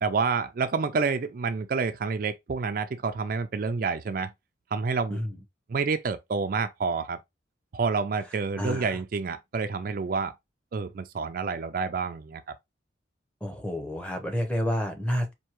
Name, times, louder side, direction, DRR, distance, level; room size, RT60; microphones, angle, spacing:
voice 1, 0.0-4.3 4.7-5.2 5.7-7.2 7.7-10.3 10.7-12.4, right 4 dB, 50° right, 0.4 m, -28 dB
voice 2, 8.6-8.9 13.4-15.3, equal, 5° left, 0.8 m, -29 dB
4.4 x 2.7 x 3.0 m
head